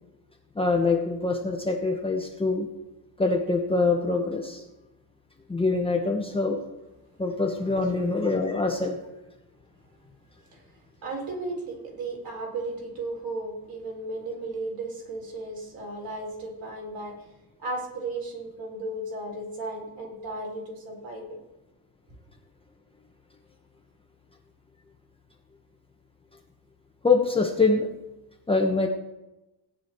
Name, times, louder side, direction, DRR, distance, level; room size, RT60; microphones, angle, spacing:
voice 1, 0.5-2.7 3.2-4.6 5.5-6.6 7.2-9.0 27.0-27.9 28.5-28.9, left 3 dB, 10° left, 1 dB, 1.2 m, -24 dB
voice 2, 11.0-17.2 17.6-21.4, right 2 dB, 45° right, -1 dB, 4.3 m, -35 dB
17.5 x 9.2 x 4.6 m, 1.0 s
cardioid pair, 135°, 50 cm